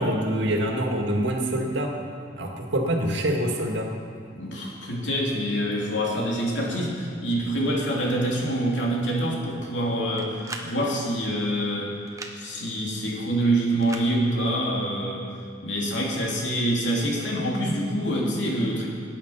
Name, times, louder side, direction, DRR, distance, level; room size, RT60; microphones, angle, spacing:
voice 1, 0.0-1.9 2.4-3.9, right 1 dB, 80° right, 1 dB, 1.9 m, -25 dB
voice 2, 4.3-11.9 12.3-15.2 15.6-18.9, right 1 dB, 85° left, -2 dB, 2.7 m, -26 dB
sound 1, 10.2-10.7 12.1-12.4 13.8-14.1, right 3 dB, 20° right, 1.0 m, -37 dB
18.0 x 9.1 x 5.7 m, 2.2 s
head